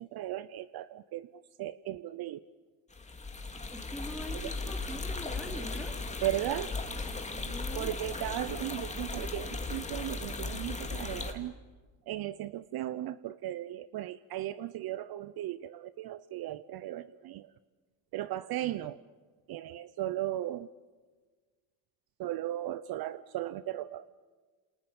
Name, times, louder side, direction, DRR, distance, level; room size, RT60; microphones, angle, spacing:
voice 1, 0.0-2.4 4.4-4.5 6.2-6.7 7.7-11.5 12.1-17.5 18.1-19.0 19.5-20.7 22.2-24.1, right 13 dB, 55° right, 16 dB, 0.7 m, -36 dB
sound 1, 2.9-11.3, left 3 dB, 15° left, 2.5 m, -37 dB
voice 2, 3.7-6.0 7.3-7.9, left 1 dB, ahead, 3 dB, 3.9 m, -43 dB
28.5 x 27.5 x 7.1 m, 1.4 s
cardioid pair, 125°, 46 cm